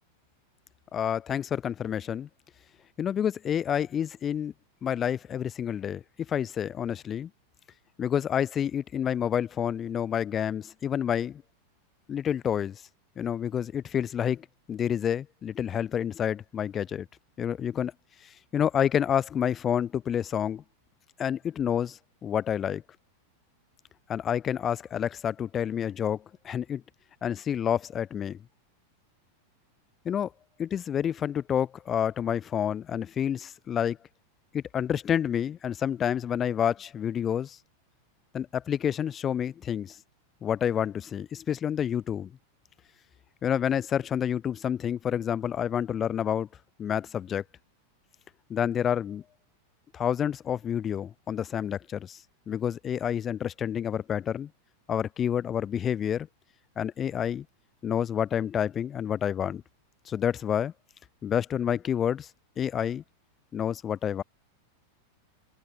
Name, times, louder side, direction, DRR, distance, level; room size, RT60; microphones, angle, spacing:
voice 1, 0.9-2.3 3.0-4.5 4.8-7.3 8.0-11.4 12.1-12.8 13.2-17.1 17.4-17.9 18.2-20.6 21.2-22.8 24.1-26.8 27.2-28.4 30.0-30.3 30.6-34.0 34.5-37.6 38.3-40.0 40.4-42.3 43.4-46.5 46.8-47.4 48.5-49.2 49.9-52.2 52.5-54.5 54.9-56.3 56.8-57.4 57.8-59.6 60.1-60.7 61.2-62.3 62.6-63.0 63.5-64.2, left 9 dB, 25° left, 0.6 m, -29 dB
open air
figure-of-eight pair, 90°, 0 cm